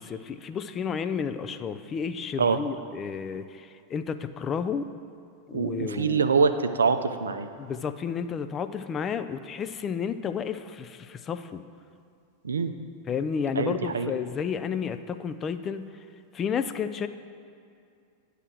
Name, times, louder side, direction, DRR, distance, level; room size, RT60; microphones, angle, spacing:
voice 1, 0.0-4.9 5.5-6.2 7.6-11.6 13.1-15.9 16.3-17.1, left 6 dB, 25° left, 10 dB, 0.3 m, -31 dB
voice 2, 5.5-7.5 12.4-12.7 13.6-14.1, right 5 dB, 70° right, 10 dB, 0.4 m, -24 dB
9.6 x 3.3 x 6.1 m, 2.4 s
figure-of-eight pair, 90°, 0 cm